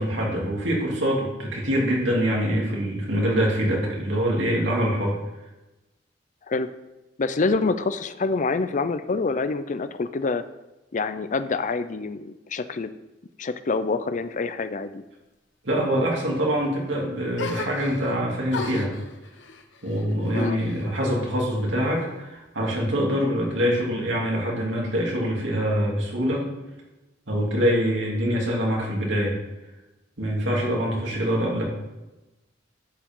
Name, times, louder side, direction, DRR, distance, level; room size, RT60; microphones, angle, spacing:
voice 1, 0.0-5.2 15.6-19.0 19.8-26.5 27.3-29.3 30.2-31.6, equal, 75° right, -2 dB, 2.9 m, -24 dB
voice 2, 7.2-10.4 10.9-12.9 13.4-15.0 20.3-20.6 30.6-30.8, left 3 dB, 40° left, 12 dB, 0.5 m, -26 dB
sound 1, 17.4-18.2 18.5-21.2 21.5-22.4, left 3 dB, 75° left, 1.1 m, -37 dB
11.0 x 7.3 x 3.7 m, 1.0 s
head